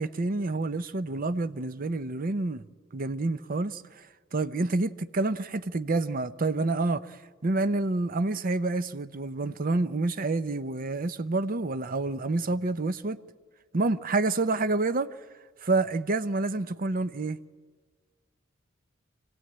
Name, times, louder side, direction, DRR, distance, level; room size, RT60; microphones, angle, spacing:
voice 1, 0.0-2.6 2.9-4.1 4.3-13.2 13.7-15.1 15.6-17.4, right 2 dB, 45° right, 0.7 m, -28 dB
25.5 x 17.0 x 8.7 m
head